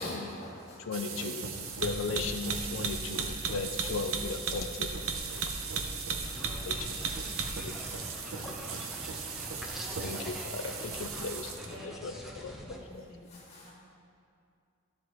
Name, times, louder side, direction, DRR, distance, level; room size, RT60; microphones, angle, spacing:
voice 1, 0.0-1.1 1.4-2.1 2.4-2.7 3.1-3.6 5.2-5.6 5.9-6.2 6.6-7.1 7.4-8.8 9.4-9.9 10.1-11.0 13.3-13.7, left 1 dB, 30° left, -7 dB, 2.1 m, -48 dB
voice 2, 0.9-1.5 1.8-4.9 5.3-5.5 6.7-6.8 10.0-11.6 12.0-12.1 12.4-12.5, left 4 dB, 65° left, 6 dB, 0.4 m, -36 dB
sound 1, 0.9-11.8, right 5 dB, 80° right, 0.7 m, -36 dB
sound 2, 6.2-12.8, equal, ahead, 0.7 m, -44 dB
voice 3, 6.4-8.0 11.6-13.7, equal, 30° right, -5 dB, 1.7 m, -52 dB
12.5 x 7.4 x 3.1 m, 2.4 s
head